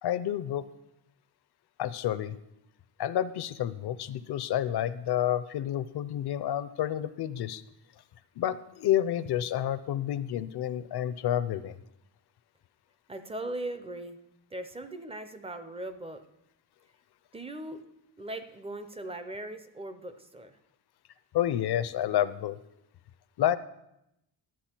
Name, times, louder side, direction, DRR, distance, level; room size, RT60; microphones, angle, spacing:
voice 1, 0.0-0.7 1.8-2.4 3.0-7.6 8.4-11.8 21.3-22.6 23.4-23.6, left 11 dB, 60° left, 14 dB, 0.6 m, -29 dB
voice 2, 13.1-14.2 14.5-16.2 17.3-17.8 18.2-20.5, right 1 dB, 15° right, 9 dB, 0.4 m, -39 dB
11.5 x 7.6 x 4.4 m, 0.85 s
wide cardioid pair, 170°, 44 cm